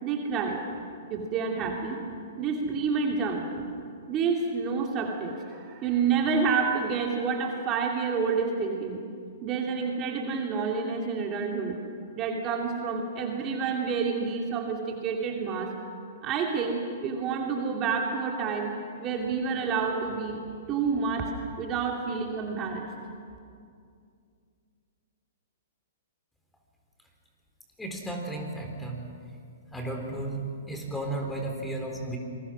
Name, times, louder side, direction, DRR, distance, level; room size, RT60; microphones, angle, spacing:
voice 1, 0.0-0.6 1.1-2.0 2.4-3.7 4.1-9.0 9.4-11.8 12.2-15.7 16.2-18.7 19.0-20.4 20.7-22.9, right 5 dB, 30° right, 1 dB, 2.8 m, -29 dB
voice 2, 27.8-29.1 29.7-32.2, right 2 dB, 5° left, 2 dB, 3.9 m, -34 dB
27.0 x 21.5 x 6.4 m, 2.3 s
hypercardioid pair, 120°, 0 cm